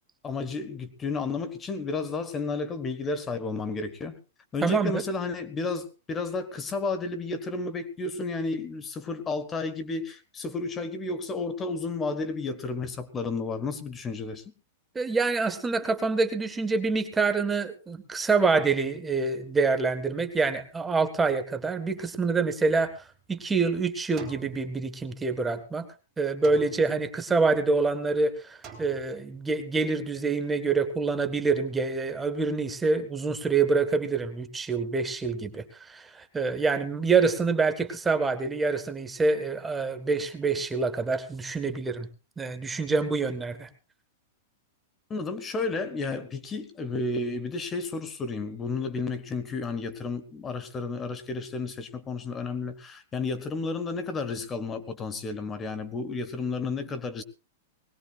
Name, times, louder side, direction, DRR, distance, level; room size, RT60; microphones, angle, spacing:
voice 1, 0.2-4.2 4.5-14.4 45.1-57.2, left 3 dB, 20° left, 11 dB, 1.4 m, -32 dB
voice 2, 4.6-5.0 14.9-22.9 23.3-25.9 26.2-42.1 42.4-43.7, right 4 dB, 15° right, 9 dB, 1.4 m, -26 dB
sound 1, 22.9-23.5 24.2-25.4 26.4-27.4 28.6-29.6, right 5 dB, 30° right, 3.8 m, -49 dB
20.5 x 18.5 x 2.4 m, 0.31 s
hypercardioid pair, 125°, 0 cm